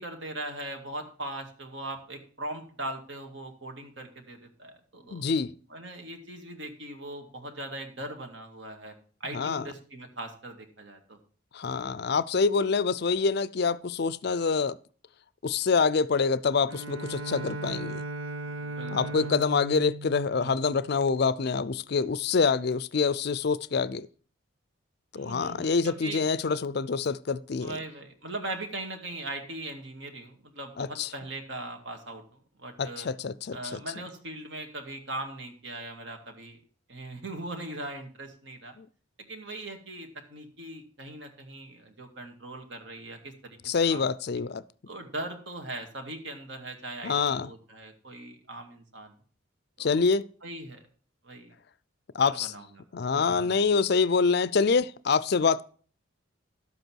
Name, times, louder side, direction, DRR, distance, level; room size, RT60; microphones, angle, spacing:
voice 1, 0.0-5.2 5.7-8.9 9.2-11.2 18.4-19.3 20.4-20.5 25.1-26.3 27.6-33.1 33.5-36.6 36.9-38.8 39.2-43.6 43.9-44.1 44.9-49.1 49.8-50.0 50.4-50.9 51.2-51.5 52.2-52.8 53.1-53.5, right 2 dB, 60° right, 2.1 m, -40 dB
voice 2, 5.1-5.6 9.3-9.6 11.5-14.8 15.4-18.0 18.9-24.1 25.1-27.8 30.8-31.1 32.8-33.8 38.8-38.9 43.6-44.6 47.0-47.5 49.8-50.3 52.1-52.5 52.9-55.6, left 5 dB, 50° left, 0.5 m, -26 dB
Bowed string instrument, 16.7-21.3, right 2 dB, 80° right, 0.8 m, -37 dB
12.0 x 8.0 x 4.6 m
head